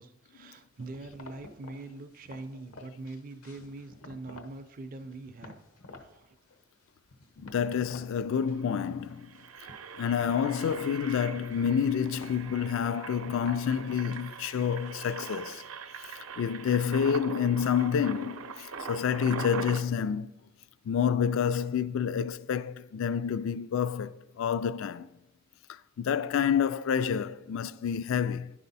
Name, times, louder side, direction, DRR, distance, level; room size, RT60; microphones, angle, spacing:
voice 1, 0.0-5.6 6.0-6.4, right 2 dB, 40° right, 0.4 m, -43 dB
sound 1, 0.8-4.6 4.9-6.1 6.5-8.1 8.4-9.0 9.3-15.6, left 2 dB, 85° left, 1.0 m, -51 dB
voice 2, 7.4-9.3 10.0-15.6 16.0-20.4 20.9-25.1 25.7-28.5, left 7 dB, 65° left, 0.3 m, -28 dB
Engine, 8.1-8.2 8.4-8.7 9.1-19.8, right 5 dB, 80° right, 0.7 m, -42 dB
10.5 x 5.6 x 4.1 m
head